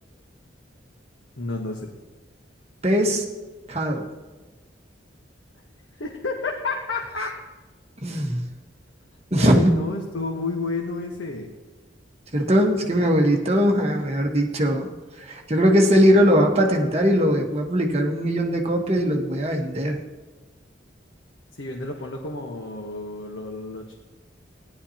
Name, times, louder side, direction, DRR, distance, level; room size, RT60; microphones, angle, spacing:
voice 1, 1.4-1.9 6.0-7.4 9.4-11.5 21.6-23.9, left 3 dB, 85° left, 1 dB, 1.2 m, -30 dB
voice 2, 2.8-3.2 3.7-4.1 8.0-8.4 9.3-9.7 12.3-14.9 15.2-20.0, equal, 35° right, 1 dB, 1.3 m, -20 dB
16.0 x 11.0 x 2.9 m, 1.3 s
head